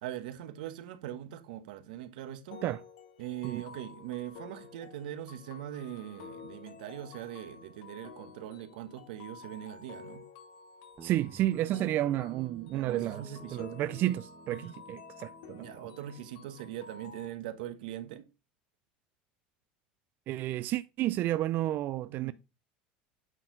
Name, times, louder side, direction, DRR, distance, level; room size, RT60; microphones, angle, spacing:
voice 1, 0.0-2.6 3.2-10.2 12.6-13.8 14.5-14.7 15.6-18.3 22.1-22.3, right 12 dB, 85° right, 1.1 m, -41 dB
sound 1, 2.5-17.3, left 6 dB, 80° left, 1.5 m, -51 dB
Guitar, 11.0-17.7, right 6 dB, 30° right, 1.0 m, -54 dB
voice 2, 11.0-15.9 20.3-22.3, right 14 dB, 50° right, 0.4 m, -31 dB
8.8 x 4.4 x 3.8 m
supercardioid pair, 115°, 5 cm